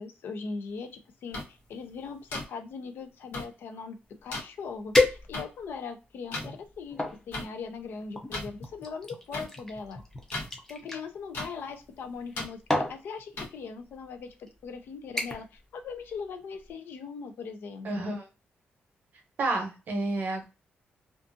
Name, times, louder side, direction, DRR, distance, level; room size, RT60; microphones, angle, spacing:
voice 1, 0.0-10.0 10.7-12.6 12.9-18.1, left 5 dB, 70° left, 6 dB, 0.5 m, -40 dB
sound 1, 1.3-1.4 2.3-2.4 3.3-3.4 4.3-4.4 5.3-5.4 6.3-6.5 7.3-7.4 8.3-8.5 9.3-9.4 10.3-10.5 11.3-11.5 12.3-12.5 13.4-13.5, left 2 dB, 85° left, 1.0 m, -34 dB
sound 2, 4.9-5.7 6.3-7.2 8.1-11.0 12.1-12.4 12.7-13.0 13.9-14.0 14.5-14.7 15.2-15.6 15.9-16.2 16.6-16.7, left 2 dB, 10° left, 0.5 m, -30 dB
voice 2, 17.8-18.3 19.4-20.4, right 2 dB, 55° right, 3 dB, 0.7 m, -30 dB
2.5 x 2.4 x 2.5 m, 0.31 s
wide cardioid pair, 165°, 4 cm